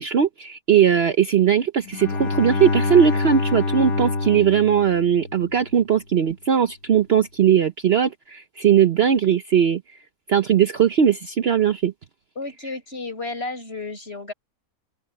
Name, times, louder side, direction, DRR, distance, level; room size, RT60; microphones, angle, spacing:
voice 1, 0.0-9.8 10.3-11.9, right 8 dB, 50° right, 0.9 m, -19 dB
Bowed string instrument, 1.9-5.7, left 3 dB, 80° left, 1.9 m, -26 dB
voice 2, 12.4-14.3, left 3 dB, 45° left, 7.5 m, -32 dB
open air
omnidirectional pair, 1.5 m